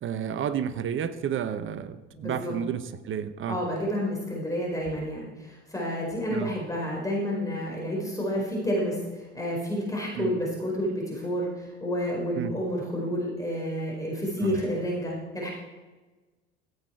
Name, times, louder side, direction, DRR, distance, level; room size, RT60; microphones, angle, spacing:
voice 1, 0.0-3.6 6.3-6.5 10.1-10.3 12.4-12.5 14.4-14.6, right 8 dB, 35° right, 12 dB, 1.0 m, -31 dB
voice 2, 2.1-2.5 3.5-15.5, equal, 10° left, -3 dB, 4.7 m, -30 dB
16.0 x 8.3 x 4.6 m, 1.2 s
hypercardioid pair, 75°, 34 cm